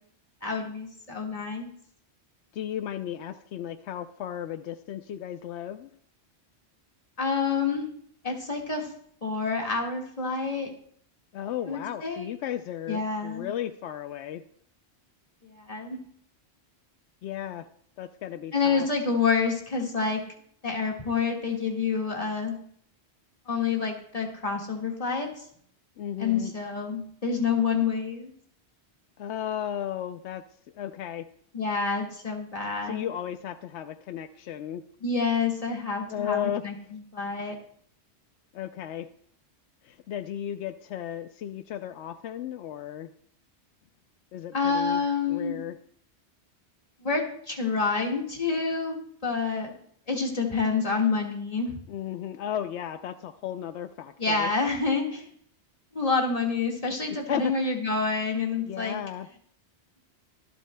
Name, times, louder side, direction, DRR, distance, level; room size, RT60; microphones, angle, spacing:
voice 1, 0.4-1.7 7.2-7.9 8.2-8.9 9.2-10.7 11.7-12.3 12.9-13.5 15.4-16.0 18.5-20.2 20.6-22.6 23.5-25.3 26.2-28.3 31.5-33.1 35.0-37.6 44.5-45.6 47.0-49.0 49.2-49.8 50.1-51.8 54.2-55.3 55.9-59.0, left 5 dB, 35° left, 0 dB, 1.9 m, -28 dB
voice 2, 2.5-5.9 11.3-14.4 17.2-17.7 18.0-18.9 26.0-26.5 29.2-30.4 30.8-31.2 32.8-34.8 36.1-36.6 38.5-39.1 39.8-43.1 44.3-45.0 45.3-45.7 51.9-54.5 57.3-57.7 58.7-59.3, left 10 dB, 85° left, 10 dB, 0.9 m, -34 dB
24.0 x 8.2 x 2.2 m, 0.63 s
omnidirectional pair, 1.1 m